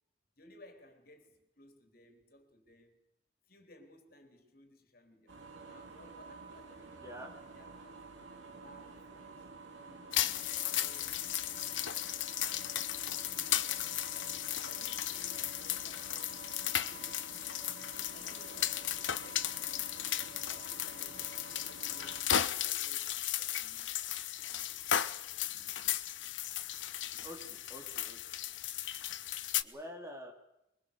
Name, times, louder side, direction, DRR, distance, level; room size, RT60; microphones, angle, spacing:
voice 1, 0.4-3.0 3.4-5.4 5.6-8.1 8.4-17.5 17.9-20.0 20.4-25.1, left 1 dB, 50° left, 3.8 m, -61 dB
sound 1, 5.3-22.2, right 4 dB, 85° right, 3.9 m, -51 dB
voice 2, 7.0-7.3 27.2-28.2 29.6-30.3, equal, 15° right, 3.6 m, -47 dB
sound 2, 10.1-29.6, left 11 dB, 85° left, 1.1 m, -35 dB
23.5 x 22.5 x 6.9 m
head